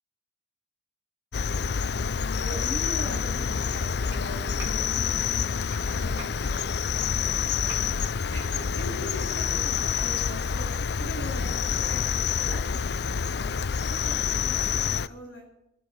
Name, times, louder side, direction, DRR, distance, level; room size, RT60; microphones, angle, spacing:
Cricket, 1.3-15.1, left 6 dB, 55° left, 0.5 m, -27 dB
voice 1, 2.0-8.0 8.3-12.0 12.4-15.5, equal, 75° left, 0 dB, 7.3 m, -42 dB
Clapping, 4.1-4.2 4.6-4.8 5.7-5.8 6.2-6.4 7.2-7.3 7.7-7.9, right 4 dB, 10° right, 4.2 m, -43 dB
24.5 x 8.2 x 7.1 m, 0.88 s
head